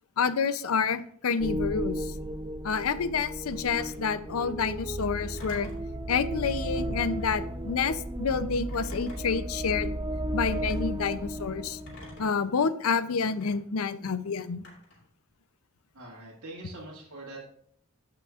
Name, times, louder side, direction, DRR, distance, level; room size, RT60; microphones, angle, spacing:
voice 1, 0.2-2.1 2.6-5.7 6.1-9.9 10.3-11.8 12.2-14.6, left 5 dB, 75° left, 13 dB, 0.5 m, -28 dB
sound 1, 1.4-12.2, right 1 dB, 20° right, 0.4 m, -34 dB
Telephone, 3.7-4.1 5.4-5.9 7.1-7.5 8.7-9.4 10.4-10.8 11.9-12.4 13.4-13.5 14.6-15.1, left 1 dB, 50° left, 2.8 m, -48 dB
voice 2, 15.9-17.4, right 2 dB, 75° right, -6 dB, 1.9 m, -43 dB
15.0 x 5.9 x 2.4 m, 0.64 s
head